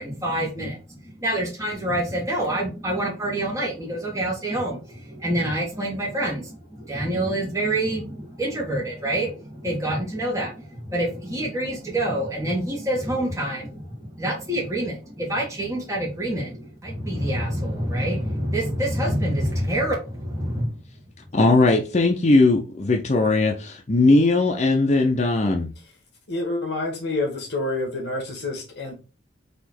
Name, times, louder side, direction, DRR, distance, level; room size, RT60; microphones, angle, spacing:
voice 1, 0.0-20.8, right 1 dB, 15° right, 1.3 m, -27 dB
voice 2, 21.3-25.7, left 2 dB, 35° left, 0.5 m, -19 dB
voice 3, 26.3-28.9, left 2 dB, 60° left, 1.5 m, -28 dB
4.2 x 2.9 x 4.3 m
head